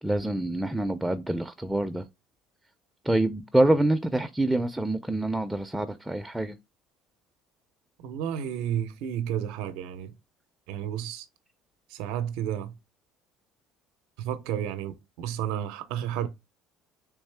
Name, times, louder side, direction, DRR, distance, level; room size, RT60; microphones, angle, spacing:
voice 1, 0.0-2.1 3.0-6.6, right 1 dB, 5° right, 0.3 m, -26 dB
voice 2, 8.0-10.1 10.7-11.3 11.9-12.7 14.2-16.3, right 10 dB, 80° right, 0.5 m, -32 dB
3.5 x 3.1 x 3.2 m
supercardioid pair, 100°, 0 cm